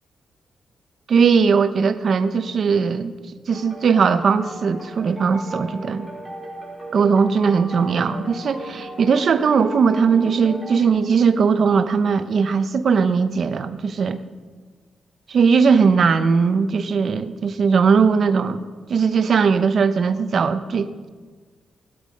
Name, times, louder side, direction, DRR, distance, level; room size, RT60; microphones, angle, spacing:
voice 1, 1.1-3.1 3.5-6.1 6.9-14.2 15.3-18.6 18.9-21.1, right 5 dB, 50° right, 10 dB, 0.8 m, -19 dB
sound 1, 3.5-10.8, right 1 dB, 5° left, 4.4 m, -36 dB
18.0 x 12.5 x 5.3 m, 1.5 s
wide cardioid pair, 145°, 0 cm